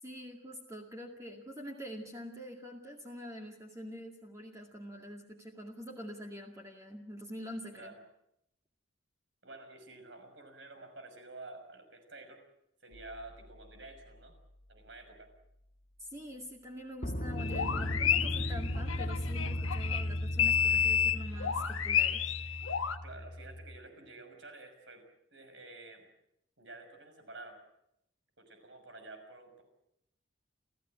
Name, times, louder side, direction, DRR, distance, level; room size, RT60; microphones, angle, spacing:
voice 1, 0.0-7.9 16.0-22.3, equal, 15° right, 1 dB, 2.2 m, -45 dB
voice 2, 9.4-12.4 12.8-14.3 14.7-15.3 23.0-25.0 25.3-26.1 26.6-27.6 28.4-29.6, right 2 dB, 60° right, 6 dB, 6.0 m, -50 dB
sound 1, 12.9-13.2 17.0-23.8, left 1 dB, 35° left, 1.5 m, -36 dB
sound 2, 17.4-23.0, left 8 dB, 85° left, 1.5 m, -30 dB
30.0 x 15.0 x 9.0 m, 0.80 s
head